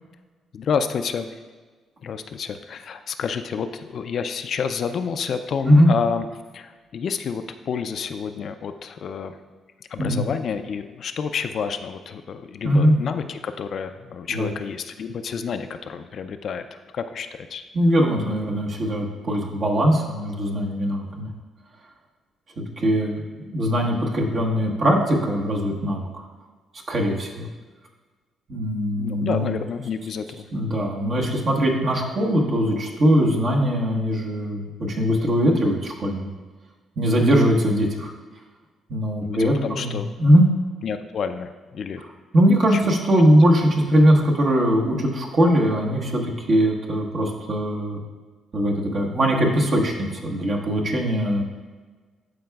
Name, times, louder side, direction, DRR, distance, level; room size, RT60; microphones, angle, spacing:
voice 1, 0.5-1.3 2.0-6.3 6.5-9.4 9.8-17.6 29.0-30.5 39.2-40.1 40.8-42.0 42.7-43.0, left 6 dB, 60° left, 9 dB, 0.4 m, -29 dB
voice 2, 17.7-21.3 22.6-26.1 26.9-27.5 28.5-29.5 30.5-36.3 37.0-38.1 38.9-40.5 42.3-48.0 48.5-51.4, equal, 50° right, 0 dB, 1.2 m, -20 dB
11.5 x 4.7 x 2.3 m, 1.4 s
cardioid pair, 90°, 0 cm